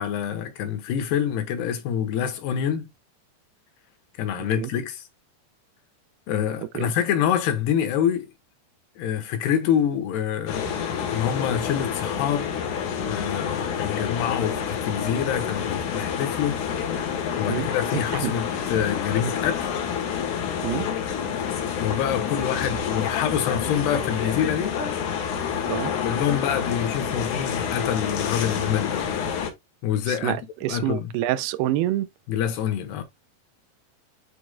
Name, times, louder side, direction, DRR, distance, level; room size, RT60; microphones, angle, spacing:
voice 1, 0.0-2.9 4.2-5.0 6.3-8.3 9.0-10.8 11.1-12.5 13.0-19.7 21.8-24.8 26.0-29.1 29.8-30.4 30.7-31.1 32.3-33.0, left 9 dB, 90° left, 3.3 m, -26 dB
voice 2, 4.4-4.7 6.6-6.9 17.5-17.7 18.1-18.3 20.6-20.9 25.7-25.9 30.1-32.1, right 14 dB, 85° right, 2.4 m, -27 dB
sound 1, 10.5-29.5, left 7 dB, 65° left, 2.2 m, -28 dB
8.8 x 4.9 x 2.2 m
omnidirectional pair, 4.6 m